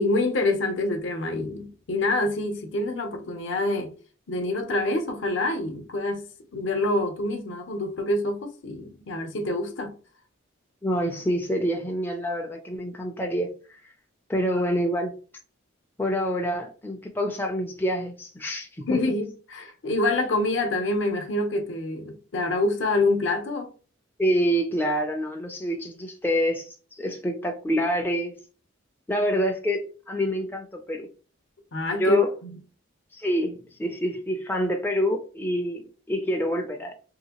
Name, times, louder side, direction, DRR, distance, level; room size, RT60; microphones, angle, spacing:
voice 1, 0.0-3.9 4.3-6.2 6.5-9.9 18.9-23.7 31.7-32.5, left 2 dB, 65° left, 0.7 m, -26 dB
voice 2, 10.8-13.8 14.3-15.1 16.0-19.0 24.2-28.3 29.1-31.1 32.0-32.3 33.1-35.8 36.1-36.9, equal, 10° left, 0.3 m, -26 dB
3.0 x 2.7 x 2.8 m
head